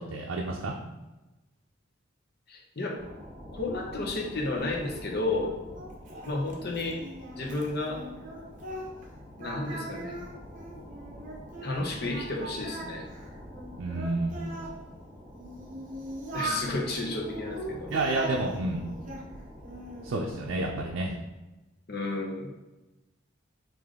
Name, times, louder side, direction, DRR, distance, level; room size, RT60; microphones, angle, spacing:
voice 1, 0.1-0.7 13.8-14.4 17.9-18.8 20.0-21.1, right 2 dB, 80° right, -1 dB, 0.5 m, -30 dB
voice 2, 2.5-3.0 3.5-5.5 6.2-7.0 7.4-8.0 9.4-10.1 11.6-13.1 16.3-17.9 21.9-22.5, left 2 dB, 55° left, 0 dB, 0.7 m, -32 dB
sound 1, 3.0-21.1, left 1 dB, 5° right, 1.0 m, -47 dB
Singing, 4.6-9.1 9.4-11.7 12.1-14.7 15.3-16.7 17.2-19.3 19.6-20.2, right 1 dB, 40° right, 0.7 m, -40 dB
5.0 x 2.6 x 3.7 m, 1.1 s
head